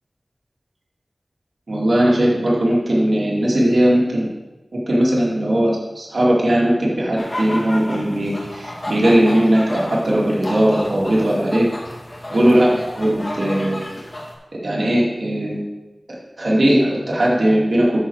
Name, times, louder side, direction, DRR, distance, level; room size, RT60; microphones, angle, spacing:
voice 1, 1.7-4.3 4.7-11.7 12.3-13.9 14.6-15.6 16.1-18.0, right 1 dB, 70° right, -5 dB, 2.4 m, -18 dB
sound 1, 7.2-14.4, left 1 dB, 40° left, 2.1 m, -32 dB
13.0 x 4.4 x 4.7 m, 1.1 s
wide cardioid pair, 45°, 0 cm